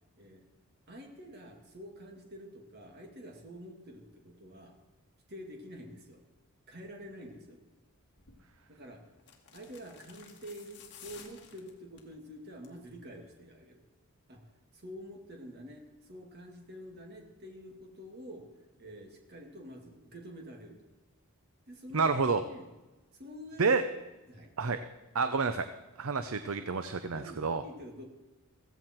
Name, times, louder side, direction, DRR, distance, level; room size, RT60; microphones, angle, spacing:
voice 1, 0.9-4.8 5.3-6.2 6.7-7.6 8.7-9.1 9.5-13.8 14.3-14.4 14.7-18.5 18.8-20.8 21.7-22.7 23.1-23.8 24.3-24.5 27.1-28.0, equal, 45° right, 2 dB, 2.4 m, -48 dB
sound 1, 8.2-8.4 9.2-12.1 12.5-12.8 13.1-13.2, left 7 dB, 50° left, 2.1 m, -53 dB
voice 2, 21.9-22.4 23.6-23.8 24.6-24.8 25.1-25.7 26.0-27.6, right 4 dB, 65° right, 10 dB, 0.6 m, -29 dB
15.5 x 15.0 x 4.6 m, 1.1 s
head